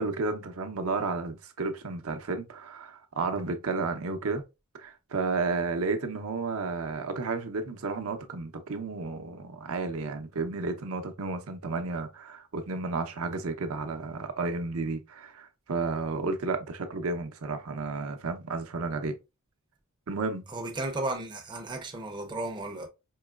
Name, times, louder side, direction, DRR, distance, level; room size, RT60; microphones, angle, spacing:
voice 1, 0.0-4.4 4.8-19.1 20.1-20.5, right 3 dB, 65° right, 0.6 m, -32 dB
voice 2, 20.5-22.9, right 2 dB, 20° right, 0.6 m, -34 dB
4.6 x 3.0 x 2.3 m
head